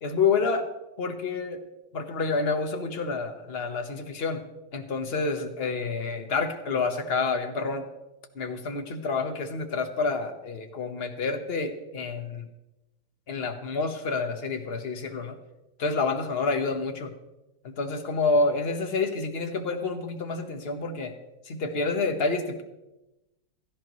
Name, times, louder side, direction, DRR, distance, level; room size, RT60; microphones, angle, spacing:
voice 1, 0.0-0.7 1.0-1.6 1.9-4.4 4.7-7.8 8.3-12.5 13.3-15.4 15.8-17.1 17.6-21.1 21.4-22.6, left 4 dB, 35° left, 6 dB, 1.1 m, -28 dB
16.5 x 14.5 x 3.1 m, 0.98 s
omnidirectional pair, 2.2 m